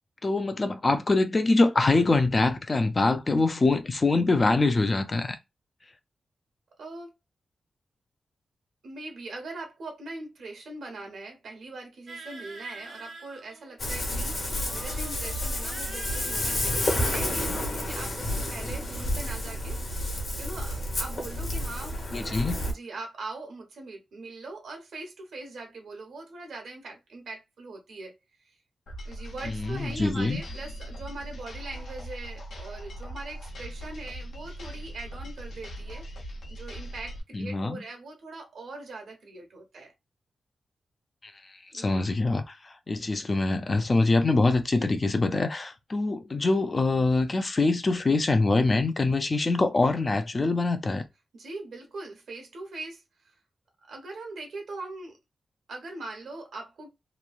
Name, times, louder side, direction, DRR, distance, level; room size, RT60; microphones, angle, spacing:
voice 1, 0.2-5.4 22.1-22.6 29.5-30.4 37.3-37.8 41.2-41.3 41.7-51.0, left 3 dB, 30° left, 0.4 m, -24 dB
voice 2, 6.8-7.1 8.8-19.8 20.4-28.2 28.4-28.5 29.0-36.1 36.5-39.9 41.7-42.0 51.3-53.4 53.9-55.2 55.7-56.9, right 2 dB, 80° right, 1.0 m, -41 dB
sound 1, 12.1-13.9 14.5-17.2, right 3 dB, 55° right, 0.5 m, -44 dB
Ocean, 13.8-22.7, left 1 dB, 50° left, 1.1 m, -30 dB
sound 2, 28.9-37.2, equal, 75° left, 0.8 m, -40 dB
3.0 x 2.3 x 2.4 m
wide cardioid pair, 145°, 0 cm